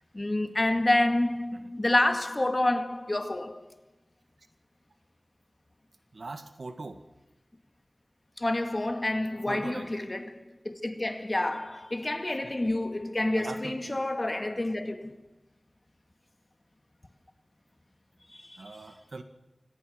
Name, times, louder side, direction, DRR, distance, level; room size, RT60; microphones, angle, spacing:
voice 1, 0.1-3.8 8.4-15.2 18.3-18.8, left 1 dB, 35° left, 2.0 m, -28 dB
voice 2, 6.1-7.0 9.5-9.9 12.4-12.7 13.3-14.0 18.6-19.2, right 3 dB, 70° right, 1.8 m, -41 dB
25.0 x 17.5 x 6.5 m
wide cardioid pair, 65°, 0 cm